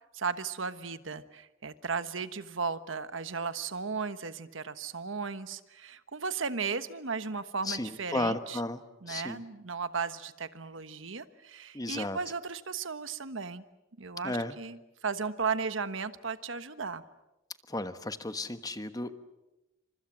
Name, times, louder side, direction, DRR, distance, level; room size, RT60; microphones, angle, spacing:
voice 1, 0.1-8.6 9.0-13.6 14.0-17.0, right 5 dB, 70° right, 12 dB, 1.3 m, -35 dB
voice 2, 7.6-8.8 9.1-9.4 11.7-12.2 14.2-14.6 17.7-19.1, left 2 dB, 20° left, 10 dB, 1.3 m, -34 dB
29.0 x 26.0 x 7.4 m, 0.95 s
head